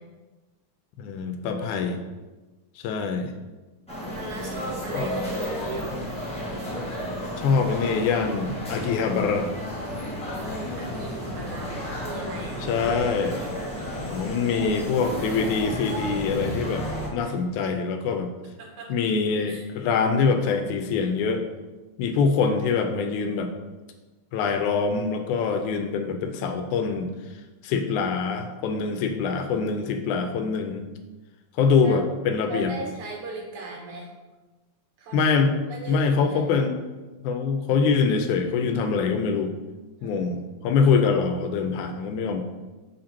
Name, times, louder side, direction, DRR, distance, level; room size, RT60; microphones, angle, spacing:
voice 1, 1.0-2.0 2.8-3.3 4.9-5.1 7.4-9.5 12.7-13.4 14.1-16.9 17.1-18.3 18.9-21.4 22.0-23.5 24.3-27.1 27.6-30.9 31.6-32.7 35.1-35.5 35.9-36.8 37.2-39.5 40.0-42.4, left 5 dB, 80° left, 6 dB, 2.0 m, -24 dB
sound 1, 3.9-17.1, equal, 5° left, 0.5 m, -32 dB
voice 2, 4.1-6.0 10.7-13.0 17.2-17.4 18.6-18.9 19.5-19.7 29.2-29.5 31.8-32.0 32.5-34.1 35.0-35.2 35.7-36.4 40.0-40.4, right 2 dB, 80° right, -1 dB, 2.7 m, -37 dB
6.9 x 3.8 x 4.4 m, 1.2 s
omnidirectional pair, 3.4 m